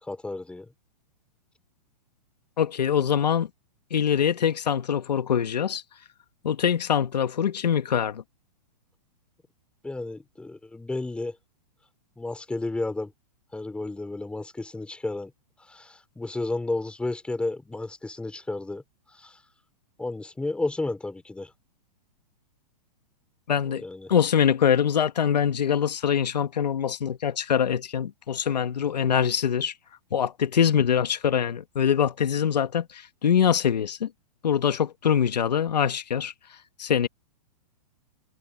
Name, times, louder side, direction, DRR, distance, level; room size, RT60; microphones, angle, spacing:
voice 1, 0.0-0.7 9.8-11.4 12.2-13.1 13.5-15.3 15.7-18.8 19.1-19.4 20.0-21.5 23.7-24.1, left 2 dB, 5° left, 3.6 m, -32 dB
voice 2, 2.6-3.5 3.9-5.8 6.4-8.2 23.5-23.8 24.1-29.7 30.1-34.1 34.4-36.3 36.8-37.1, left 8 dB, 90° left, 1.7 m, -24 dB
hypercardioid pair, 140°, 21 cm